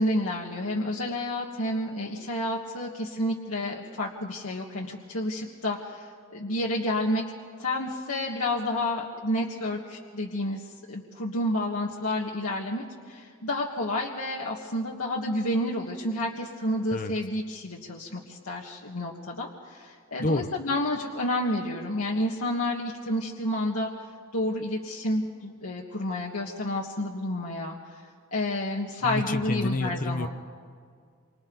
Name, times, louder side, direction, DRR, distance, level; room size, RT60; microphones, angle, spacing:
voice 1, 0.0-7.2 7.6-23.9 24.3-28.0 28.3-30.3, left 1 dB, 90° left, -3 dB, 1.7 m, -30 dB
voice 2, 20.2-20.5 29.0-30.3, left 2 dB, 40° left, 9 dB, 0.9 m, -28 dB
28.0 x 25.5 x 4.0 m, 2.1 s
head